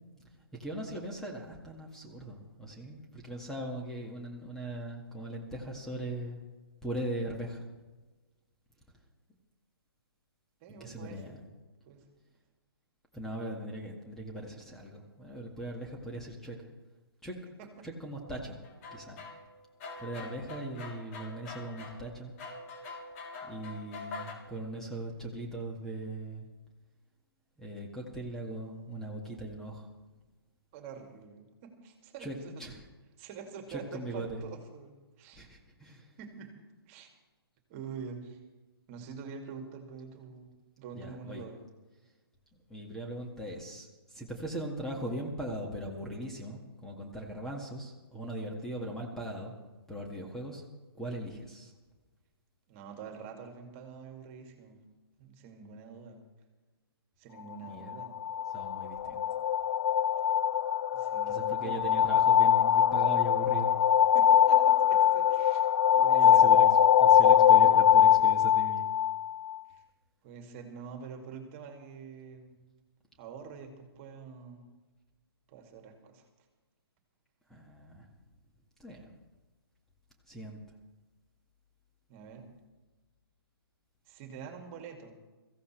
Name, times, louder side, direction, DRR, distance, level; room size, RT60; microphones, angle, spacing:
voice 1, 0.6-6.4 6.8-7.6 10.7-11.4 13.1-16.6 17.2-17.3 17.8-18.6 18.9-19.2 20.0-22.3 23.4-26.5 27.6-29.9 32.2-32.9 33.7-34.4 35.4-36.1 40.9-41.4 42.7-49.5 49.9-50.6 51.0-51.7 57.7-57.9 58.5-59.2 61.3-63.7 65.9-66.7 67.0-68.9 77.5-78.1 78.8-79.1 80.3-80.6, right 1 dB, 5° left, -1 dB, 2.0 m, -39 dB
voice 2, 10.6-11.4 11.9-12.0 17.6-17.9 30.7-32.6 33.2-35.4 36.2-36.5 36.9-37.1 37.7-38.4 38.9-40.5 40.8-41.6 52.7-54.8 55.2-56.2 57.2-58.2 60.9-61.8 64.1-65.7 66.0-66.5 69.7-69.8 70.2-72.6 73.2-74.7 75.5-76.2 82.1-82.4 84.1-85.1, right 6 dB, 30° right, 4 dB, 2.5 m, -46 dB
sound 1, 18.2-24.3, left 3 dB, 35° left, 3.4 m, -45 dB
sound 2, 57.9-69.6, left 9 dB, 55° left, 0.5 m, -23 dB
23.5 x 15.5 x 3.4 m, 1.2 s
figure-of-eight pair, 135°, 13 cm